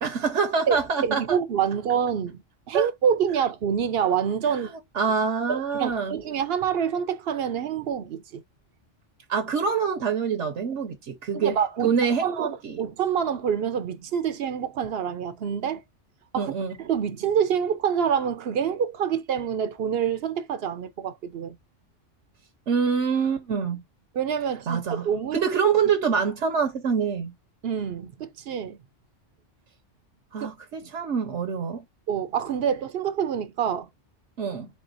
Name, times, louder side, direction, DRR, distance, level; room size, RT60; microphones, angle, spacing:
voice 1, 0.0-1.4 2.7-2.9 4.9-6.1 9.3-11.6 11.8-12.8 16.4-16.8 22.7-23.8 24.7-27.3 30.3-31.8 34.4-34.7, right 6 dB, 75° right, 1.1 m, -25 dB
voice 2, 0.7-2.4 2.7-4.7 5.5-8.4 11.3-11.9 12.2-15.8 16.3-16.5 16.8-21.6 24.1-25.5 27.6-28.8 30.4-30.5 32.1-33.9, right 8 dB, 60° right, 0.8 m, -26 dB
4.3 x 3.7 x 2.5 m
omnidirectional pair, 1.2 m